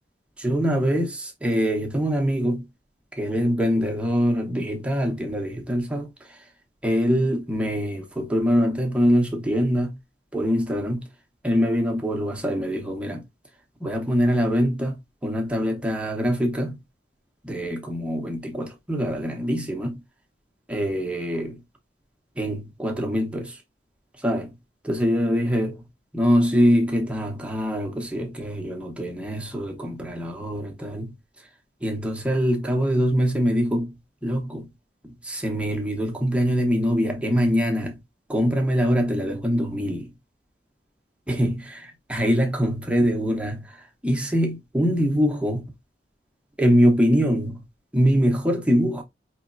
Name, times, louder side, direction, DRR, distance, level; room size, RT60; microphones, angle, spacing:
voice 1, 0.4-2.7 3.1-6.4 6.8-10.0 10.3-11.1 11.4-13.2 13.8-16.8 17.4-20.0 20.7-21.6 22.4-23.6 24.2-24.6 24.8-25.9 26.1-31.1 31.8-34.7 35.0-38.0 38.3-40.1 41.3-45.7 46.6-47.6 47.9-49.0, equal, 5° right, 0.8 m, -24 dB
4.8 x 3.1 x 2.5 m
head